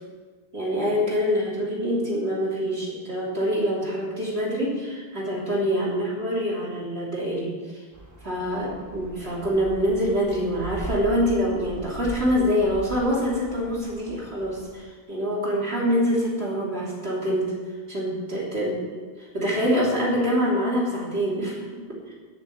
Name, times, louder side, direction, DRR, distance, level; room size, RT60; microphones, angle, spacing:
voice 1, 0.5-7.8 8.2-17.5 17.9-18.7 19.3-22.1, equal, 90° right, -5 dB, 3.4 m, -25 dB
sound 1, 7.9-14.7, right 2 dB, 15° right, 1.4 m, -40 dB
10.5 x 6.7 x 7.8 m, 1.5 s
omnidirectional pair, 1.0 m